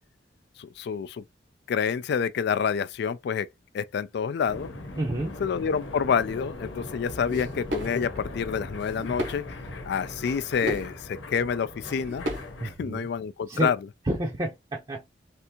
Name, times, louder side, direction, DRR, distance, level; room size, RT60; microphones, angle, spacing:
voice 1, 0.6-1.2 1.7-3.5 3.7-4.7 5.4-9.5 9.8-12.2 12.6-13.8, left 6 dB, 60° left, 0.3 m, -28 dB
sound 1, 4.5-12.8, left 2 dB, 85° left, 0.9 m, -39 dB
voice 2, 5.0-5.3 12.6-13.1 13.5-13.7 14.0-15.1, right 1 dB, 25° right, 0.6 m, -30 dB
sound 2, 7.3-8.2 8.6-9.5 9.7-9.8 10.3-10.9 11.5-11.6 11.8-12.5, equal, 75° right, 1.2 m, -34 dB
3.4 x 2.6 x 2.8 m
head